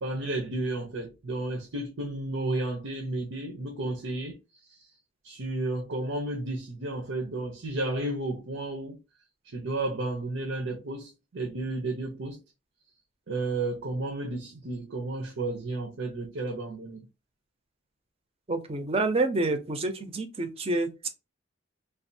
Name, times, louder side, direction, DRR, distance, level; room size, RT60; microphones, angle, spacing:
voice 1, 0.0-4.4 4.6-4.9 5.2-9.0 9.4-12.4 13.3-17.1, right 2 dB, 85° right, 0.7 m, -32 dB
voice 2, 18.5-21.1, right 2 dB, 30° right, 0.5 m, -28 dB
3.3 x 2.3 x 2.6 m
head